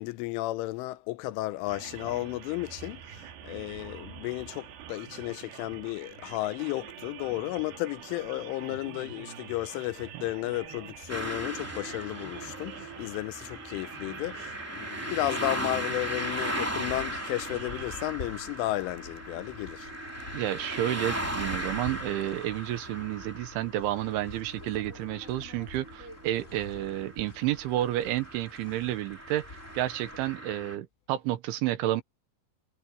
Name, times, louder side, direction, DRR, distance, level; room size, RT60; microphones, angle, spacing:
voice 1, 0.0-19.9, left 18 dB, 90° left, 3.3 m, -33 dB
sound 1, 1.7-18.0, right 9 dB, 65° right, 3.5 m, -46 dB
sound 2, 11.1-30.8, right 1 dB, 5° right, 1.5 m, -38 dB
sound 3, 16.2-30.4, left 2 dB, 25° left, 2.0 m, -47 dB
voice 2, 20.3-32.0, right 14 dB, 80° right, 3.6 m, -31 dB
omnidirectional pair, 5.5 m